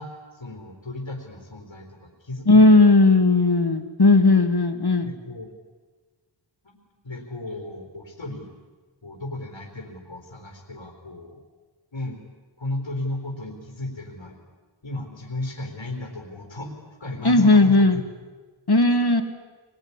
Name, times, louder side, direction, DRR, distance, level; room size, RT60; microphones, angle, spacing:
voice 1, 0.0-2.8 5.0-5.5 6.6-6.8 7.0-8.5 9.0-11.4 11.9-12.2 12.6-14.4 14.8-18.0, left 2 dB, 80° left, 2 dB, 3.8 m, -35 dB
voice 2, 2.5-5.1 17.2-18.0 18.7-19.2, left 2 dB, 55° left, 8 dB, 2.4 m, -16 dB
24.5 x 21.5 x 9.9 m, 1.4 s
wide cardioid pair, 45°, 46 cm